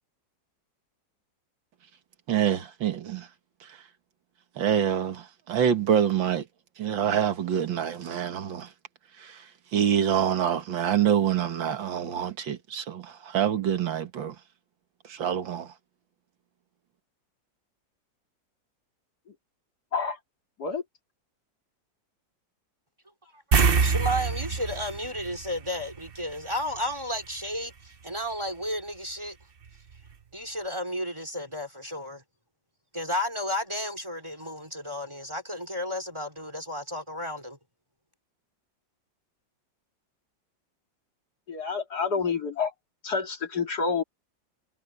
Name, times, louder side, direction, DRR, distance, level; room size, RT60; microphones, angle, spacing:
voice 1, 2.3-3.3 3.7-3.8 4.6-6.4 6.8-8.7 9.2-9.4 9.7-14.4 15.1-15.7, right 9 dB, 80° right, 2.2 m, -26 dB
sound 1, 23.5-26.3 26.6-26.8 29.7-29.8 30.1-30.2, right 5 dB, 40° right, 0.9 m, -25 dB
voice 2, 23.8-29.4 30.3-32.2 32.9-37.6, equal, 15° right, 3.1 m, -33 dB
voice 3, 41.5-42.7 43.0-44.0, left 5 dB, 55° left, 3.0 m, -28 dB
omnidirectional pair, 2.1 m